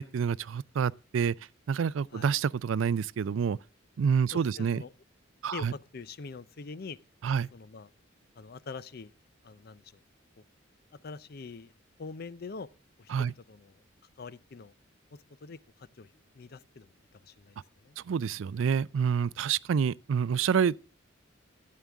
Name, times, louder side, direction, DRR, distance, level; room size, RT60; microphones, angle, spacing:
voice 1, 0.0-1.3 1.7-3.6 4.0-4.8 5.4-5.7 7.2-7.5 13.1-13.3 18.0-20.8, right 7 dB, 80° right, 0.4 m, -28 dB
voice 2, 4.3-4.9 5.5-7.0 7.5-7.9 8.4-9.1 9.4-9.8 11.0-11.7 12.0-12.7 13.0-13.8 14.2-14.7 15.1-16.1 16.3-16.9 17.2-17.6 17.8-18.0, left 4 dB, 55° left, 0.5 m, -44 dB
12.5 x 8.5 x 3.5 m
head